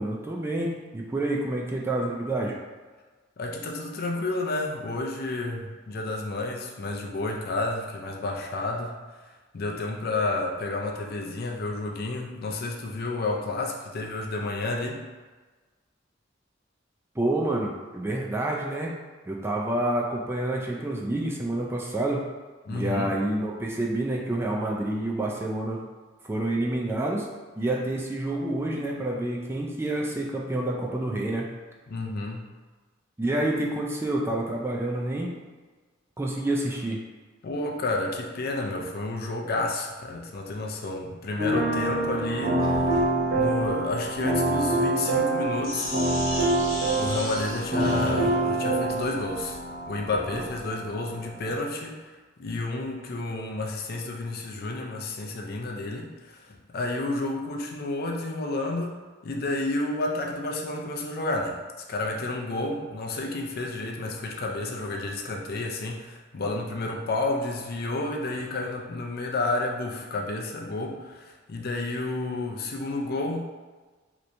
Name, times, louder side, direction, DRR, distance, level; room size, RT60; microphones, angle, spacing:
voice 1, 0.0-2.5 17.2-18.9 19.3-22.3 22.7-25.8 26.2-27.3 27.6-31.5 33.2-35.4 36.2-37.0, right 1 dB, 15° right, -2 dB, 0.3 m, -28 dB
voice 2, 3.4-9.2 9.5-15.0 22.7-23.1 31.9-32.4 37.4-43.0 43.3-45.9 47.0-49.6 49.9-61.6 61.9-73.4, left 2 dB, 50° left, 0 dB, 0.4 m, -31 dB
sound 1, 41.4-51.5, right 2 dB, 45° right, 0.6 m, -26 dB
Sink (filling or washing), 42.6-50.6, left 1 dB, 90° left, 0.8 m, -38 dB
3.2 x 2.9 x 2.6 m, 1.3 s
head